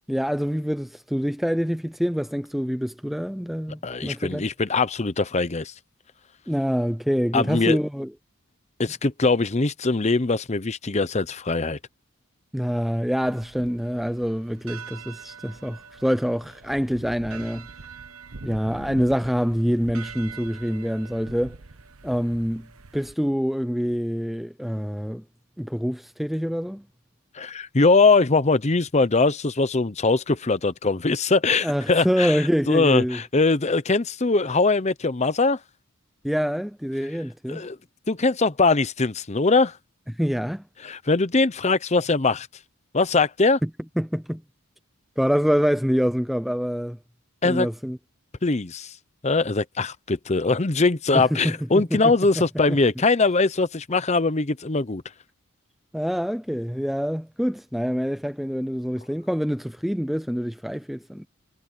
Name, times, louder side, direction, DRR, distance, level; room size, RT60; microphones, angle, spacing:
voice 1, 0.1-4.5 6.5-8.1 12.5-17.7 18.4-21.6 22.0-22.7 22.9-25.2 25.6-26.8 31.6-33.2 36.2-37.7 40.1-40.6 43.6-43.7 44.0-44.4 45.2-47.0 47.4-48.0 51.1-52.8 55.9-61.3, equal, ahead, 0.4 m, -26 dB
voice 2, 3.8-5.7 7.3-7.8 8.8-11.8 27.3-32.4 32.7-35.6 37.5-37.8 38.1-39.8 40.8-42.5 42.9-43.6 47.4-47.7 48.4-48.9 49.2-55.0, left 3 dB, 30° left, 0.8 m, -21 dB
sound 1, 13.2-23.1, right 4 dB, 85° right, 1.1 m, -43 dB
head